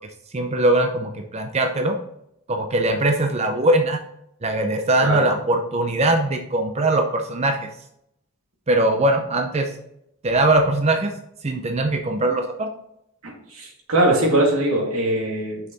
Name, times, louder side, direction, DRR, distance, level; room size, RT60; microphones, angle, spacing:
voice 1, 0.3-1.9 2.5-4.0 4.4-7.7 8.7-9.7 10.2-11.1 11.4-12.7, right 2 dB, 30° right, 4 dB, 0.6 m, -21 dB
voice 2, 13.2-15.6, right 1 dB, 90° right, 0 dB, 2.2 m, -21 dB
6.5 x 5.7 x 4.1 m, 0.78 s
head